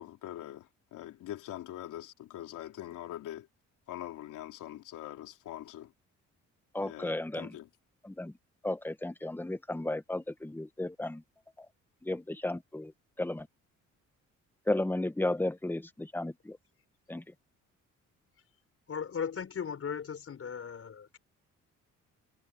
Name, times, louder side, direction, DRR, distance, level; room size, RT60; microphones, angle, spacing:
voice 1, 0.0-3.5 3.9-5.9 6.8-7.7, left 13 dB, 85° left, 3.2 m, -43 dB
voice 2, 6.7-7.6 8.0-8.3 8.6-11.2 11.6-11.7 12.0-12.9 13.2-13.5 14.7-16.6 17.1-17.2, left 1 dB, 5° left, 1.4 m, -34 dB
voice 3, 18.9-21.2, left 7 dB, 50° left, 5.3 m, -37 dB
cardioid pair, 90°, 30 cm